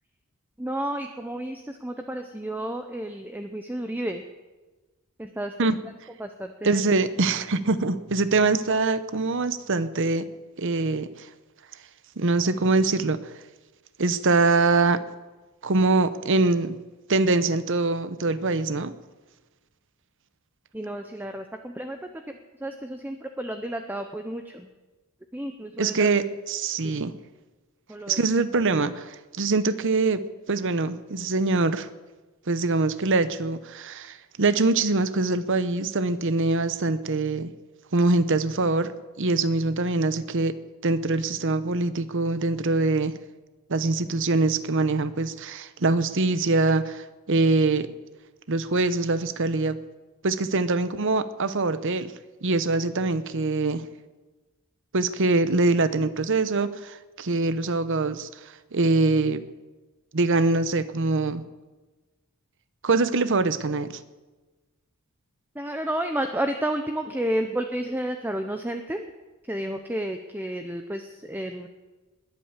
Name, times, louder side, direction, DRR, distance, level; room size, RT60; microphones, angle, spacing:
voice 1, 0.6-4.2 5.2-5.5 6.2-6.8 20.7-22.0 22.6-24.7 25.3-26.1 26.8-27.0 27.9-28.2 65.6-69.0 69.5-71.7, right 1 dB, 10° right, 6 dB, 0.7 m, -31 dB
voice 2, 6.6-10.3 10.6-11.3 12.2-13.3 14.0-15.0 15.6-16.8 17.1-18.9 25.8-27.1 28.1-30.2 30.5-31.9 32.5-37.5 37.9-38.9 39.2-40.5 40.8-43.1 43.7-47.9 48.5-49.8 50.2-52.1 52.4-53.8 54.9-58.3 58.7-59.4 60.1-61.4 62.8-64.0, right 3 dB, 55° right, 13 dB, 0.9 m, -23 dB
20.5 x 8.7 x 7.3 m, 1.2 s
head